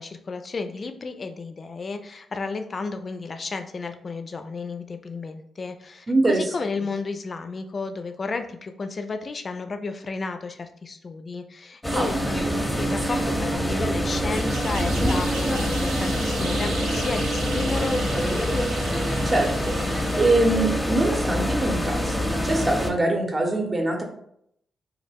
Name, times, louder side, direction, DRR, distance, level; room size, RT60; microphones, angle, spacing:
voice 1, 0.0-18.6, left 4 dB, 45° left, 7 dB, 0.3 m, -33 dB
voice 2, 6.1-6.4 11.9-12.1 19.2-24.0, right 2 dB, 35° right, 2 dB, 0.7 m, -23 dB
sound 1, 11.8-22.9, equal, 10° left, 0.6 m, -25 dB
sound 2, 14.3-20.7, right 3 dB, 85° right, 0.5 m, -37 dB
2.2 x 2.1 x 3.4 m, 0.71 s
hypercardioid pair, 40°, 0 cm